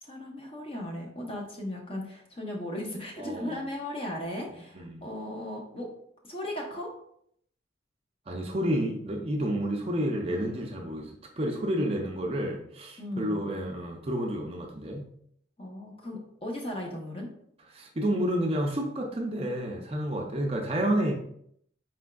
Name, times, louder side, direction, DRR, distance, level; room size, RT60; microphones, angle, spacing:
voice 1, 0.0-5.9 6.2-6.9 13.0-13.5 15.6-17.3, left 1 dB, 30° left, -1 dB, 0.8 m, -37 dB
voice 2, 3.2-3.6 4.5-5.0 8.3-15.1 17.7-21.1, right 1 dB, 30° right, 1 dB, 0.5 m, -30 dB
4.8 x 3.5 x 2.2 m, 0.68 s
head